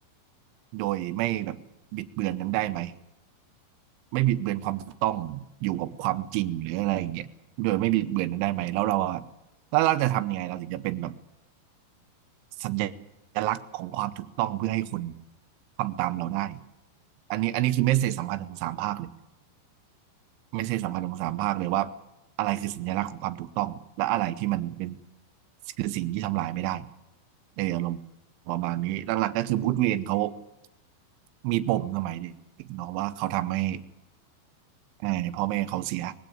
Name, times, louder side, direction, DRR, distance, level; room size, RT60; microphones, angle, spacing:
voice 1, 0.7-1.6 1.9-2.9 4.1-7.3 7.6-9.2 9.7-11.1 12.6-12.9 13.3-15.2 15.8-16.6 17.3-19.1 20.5-21.9 22.4-25.0 25.8-26.9 27.6-28.0 28.5-30.3 31.4-33.8 35.0-36.1, right 15 dB, 80° right, 14 dB, 3.2 m, -28 dB
21.5 x 16.5 x 7.9 m, 0.92 s
omnidirectional pair, 5.6 m